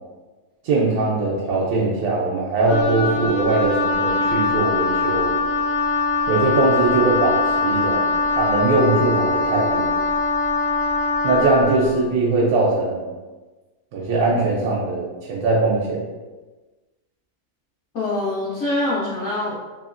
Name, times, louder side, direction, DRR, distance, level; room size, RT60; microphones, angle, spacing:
voice 1, 0.6-5.3 6.3-9.9 11.2-13.1 13.9-16.0, right 3 dB, 80° right, -4 dB, 1.1 m, -21 dB
Wind instrument woodwind instrument, 2.7-11.8, left 3 dB, 40° left, 0.4 m, -22 dB
voice 2, 17.9-19.7, left 2 dB, 60° left, -8 dB, 0.8 m, -24 dB
3.0 x 2.7 x 2.4 m, 1.2 s
omnidirectional pair, 1.6 m